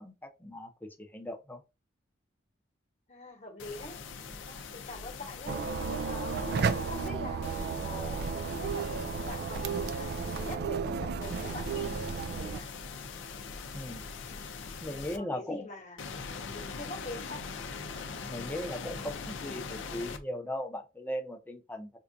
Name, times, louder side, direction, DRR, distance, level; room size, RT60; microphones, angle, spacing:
voice 1, 0.0-1.6 13.7-14.0 14.8-15.7 18.2-21.9, left 1 dB, 10° left, 0.7 m, -38 dB
voice 2, 3.1-3.9 4.5-5.6 6.0-12.7 15.2-16.0 16.4-17.4, left 1 dB, 40° left, 1.1 m, -44 dB
sound 1, 3.6-7.1 7.4-10.6 11.2-15.2 16.0-20.2, left 5 dB, 75° left, 0.5 m, -42 dB
sound 2, 5.5-12.6, right 5 dB, 60° right, 0.4 m, -33 dB
4.5 x 2.4 x 2.6 m
head